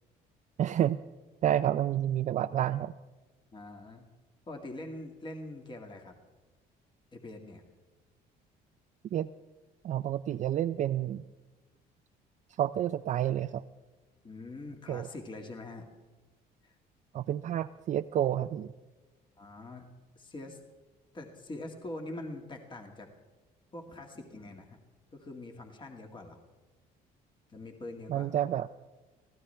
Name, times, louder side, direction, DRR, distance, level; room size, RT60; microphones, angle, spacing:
voice 1, 0.6-1.0 1.4-2.9 9.1-9.3 9.8-11.2 12.6-13.6 14.9-15.1 17.1-18.7 28.1-28.7, right 11 dB, 45° right, 9 dB, 0.4 m, -29 dB
voice 2, 3.5-4.1 4.5-6.1 7.1-7.6 14.2-15.8 16.6-16.8 19.4-19.9 20.2-20.6 21.1-23.1 23.7-24.8 25.1-26.4 27.5-28.3, left 2 dB, 30° left, 3 dB, 2.0 m, -43 dB
24.0 x 16.5 x 3.4 m, 1.2 s
cardioid pair, 110°, 17 cm